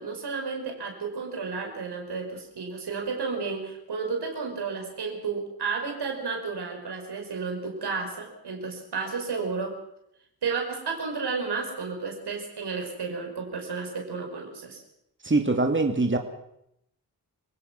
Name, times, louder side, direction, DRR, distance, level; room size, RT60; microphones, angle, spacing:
voice 1, 0.0-9.8 10.4-14.8, right 4 dB, 85° right, 3 dB, 5.2 m, -32 dB
voice 2, 15.2-16.2, right 3 dB, 30° right, 5 dB, 2.9 m, -23 dB
27.5 x 17.5 x 6.1 m, 0.76 s
cardioid pair, 50°, 39 cm